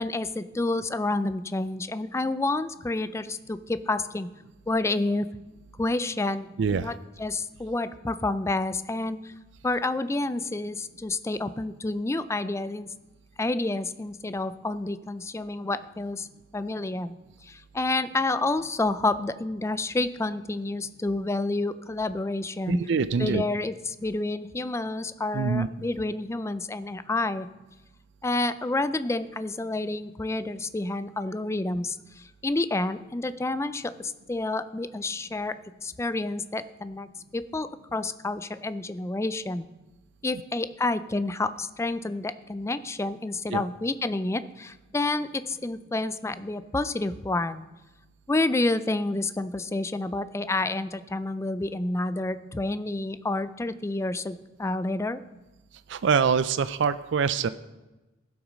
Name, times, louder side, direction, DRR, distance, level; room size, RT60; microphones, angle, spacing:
voice 1, 0.0-4.3 4.7-5.3 5.8-9.3 9.6-12.9 13.4-16.3 16.5-17.1 17.4-22.8 23.2-27.5 28.2-39.7 40.2-47.7 48.3-55.2, left 2 dB, 15° left, 13 dB, 0.3 m, -29 dB
voice 2, 6.6-6.9 22.7-23.4 25.3-25.7 43.5-43.6 55.9-57.5, right 6 dB, 60° right, 13 dB, 0.4 m, -24 dB
16.0 x 6.1 x 6.2 m, 1.1 s
head